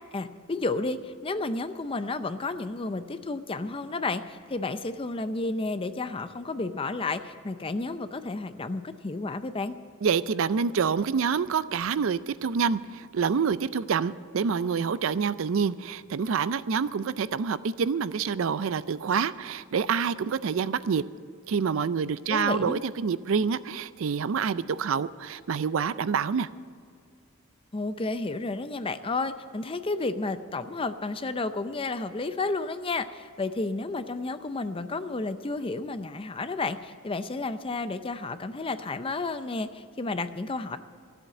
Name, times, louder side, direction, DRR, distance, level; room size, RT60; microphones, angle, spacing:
voice 1, 0.1-9.8 22.3-22.8 27.7-40.8, left 3 dB, 25° left, 11 dB, 0.5 m, -31 dB
voice 2, 10.0-21.0 21.5-26.5, right 6 dB, 65° right, 16 dB, 0.4 m, -27 dB
13.5 x 8.0 x 8.5 m, 2.2 s
head